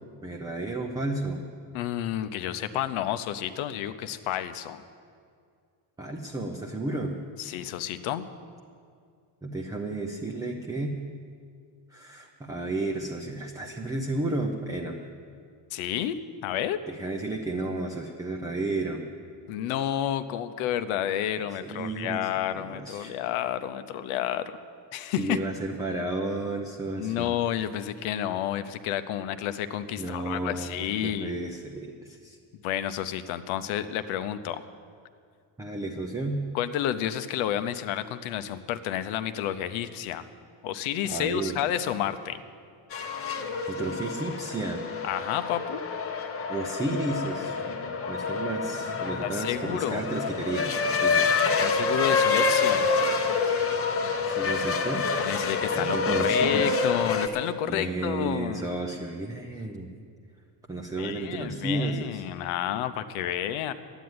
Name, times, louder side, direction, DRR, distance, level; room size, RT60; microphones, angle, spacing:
voice 1, 0.2-1.4 6.0-7.1 9.4-11.0 11.9-15.0 16.9-19.0 21.6-23.2 25.2-27.3 30.0-32.4 35.6-36.4 41.1-41.7 43.7-44.8 46.5-47.6 48.1-51.5 54.3-55.0 55.7-56.8 57.7-59.9 60.7-62.2, right 2 dB, 10° right, 1 dB, 0.5 m, -32 dB
voice 2, 1.7-4.8 7.4-8.2 15.7-16.1 16.4-16.8 19.5-24.5 24.9-25.4 27.0-31.4 32.6-34.6 36.5-40.2 40.6-42.4 45.0-45.8 49.2-50.0 51.6-52.9 55.2-58.6 61.0-63.7, left 11 dB, 85° left, 12 dB, 0.9 m, -30 dB
sound 1, 42.9-57.3, left 4 dB, 30° left, 0.8 m, -27 dB
12.0 x 9.1 x 9.6 m, 2.2 s
cardioid pair, 175°, 47 cm